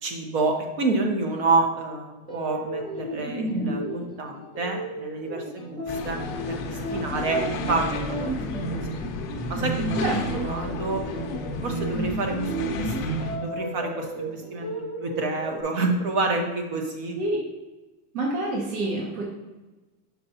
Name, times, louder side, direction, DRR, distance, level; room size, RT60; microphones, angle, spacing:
voice 1, 0.0-6.2 6.5-8.8 9.5-10.0 10.4-11.0 11.6-17.2, right 3 dB, 45° right, 3 dB, 1.3 m, -28 dB
sound 1, 2.2-15.6, right 2 dB, 10° right, 0.7 m, -32 dB
sound 2, 5.9-13.4, left 4 dB, 30° left, 0.6 m, -33 dB
voice 2, 10.0-10.5 17.1-17.4 18.1-19.2, right 2 dB, 85° right, -3 dB, 1.7 m, -28 dB
6.6 x 5.7 x 2.8 m, 1.1 s
supercardioid pair, 160°, 44 cm